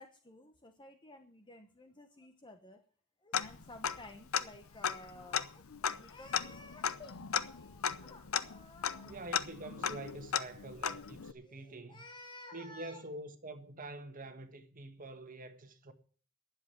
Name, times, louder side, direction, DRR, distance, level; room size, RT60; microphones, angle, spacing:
voice 1, 0.0-2.8 3.2-9.2 11.4-13.0, left 2 dB, 20° left, 1.0 m, -54 dB
Tick-tock, 3.3-4.1 4.3-4.4 4.8-11.3, left 8 dB, 80° left, 0.7 m, -36 dB
voice 2, 9.0-12.0 12.5-15.9, right 2 dB, 40° right, 1.5 m, -46 dB
11.0 x 7.5 x 9.6 m
head